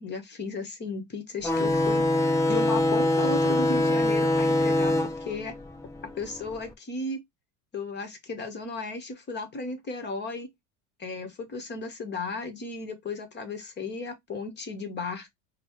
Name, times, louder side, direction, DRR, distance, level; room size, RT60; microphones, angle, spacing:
voice 1, 0.0-2.0 2.5-5.5 6.1-7.2 7.7-10.5 11.0-15.3, left 3 dB, 30° left, 1.1 m, -35 dB
sound 1, 1.4-6.6, left 1 dB, 10° left, 0.6 m, -24 dB
5.2 x 2.1 x 3.0 m
supercardioid pair, 115°, 35 cm